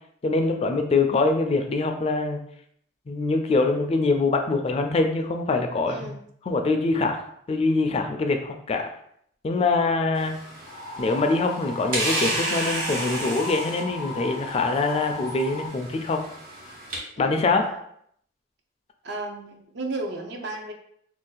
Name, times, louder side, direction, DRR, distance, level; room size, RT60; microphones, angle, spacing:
voice 1, 0.2-2.4 3.1-6.2 6.5-7.2 7.5-8.9 9.4-10.3 11.0-16.2 17.2-17.7, left 3 dB, 35° left, 5 dB, 0.3 m, -24 dB
voice 2, 5.9-6.2 17.2-17.8 19.0-20.7, right 2 dB, 65° right, 3 dB, 0.5 m, -34 dB
sound 1, 10.1-17.0, right 1 dB, 50° right, 1.2 m, -32 dB
sound 2, 10.7-15.7, left 3 dB, 85° left, 0.6 m, -36 dB
2.5 x 2.2 x 3.8 m, 0.68 s
head